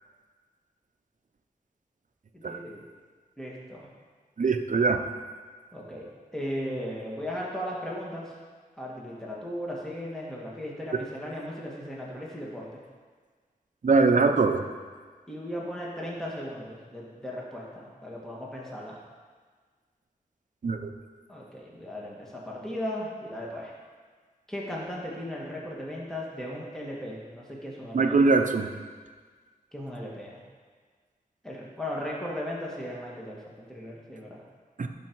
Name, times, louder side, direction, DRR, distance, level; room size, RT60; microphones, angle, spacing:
voice 1, 2.3-2.8 3.4-3.9 5.7-6.1 6.3-8.3 8.8-12.8 15.3-19.0 21.3-23.7 24.5-28.2 29.7-30.4 31.4-34.4, equal, 5° left, -4 dB, 1.9 m, -37 dB
voice 2, 4.4-5.0 10.9-11.0 13.8-14.6 20.6-20.9 27.9-28.7 34.8-34.9, right 4 dB, 55° right, 7 dB, 0.7 m, -22 dB
11.5 x 5.4 x 4.7 m, 1.5 s
wide cardioid pair, 85°, 15 cm